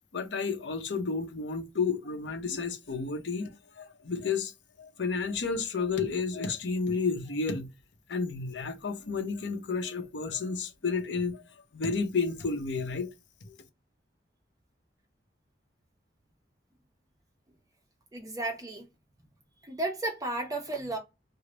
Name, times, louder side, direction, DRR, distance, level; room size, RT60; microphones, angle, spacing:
voice 1, 0.1-4.5 4.8-7.7 8.1-11.4 11.7-13.1 13.4-13.5, left 4 dB, 90° left, 0.7 m, -31 dB
voice 2, 18.1-18.9 19.6-21.0, right 2 dB, 20° right, 0.5 m, -33 dB
3.3 x 2.0 x 3.8 m
head